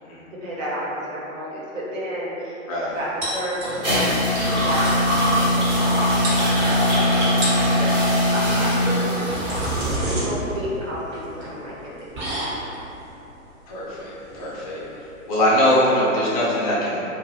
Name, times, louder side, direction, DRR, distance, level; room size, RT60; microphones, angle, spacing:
voice 1, 0.3-2.6 2.9-5.0 5.4-12.3 12.6-12.7, equal, 70° right, -6 dB, 1.0 m, -32 dB
sound 1, 3.2-4.1 4.4-4.5 4.7-5.1 5.9-6.0 6.2-6.9 7.3-7.7 8.9-15.6, right 1 dB, 35° right, 1.1 m, -30 dB
sound 2, 3.6-9.9, left 1 dB, 15° right, 0.7 m, -20 dB
voice 2, 13.7-14.8 15.3-17.0, equal, 25° left, -7 dB, 0.5 m, -22 dB
2.5 x 2.3 x 2.8 m, 3.0 s
hypercardioid pair, 135°, 41 cm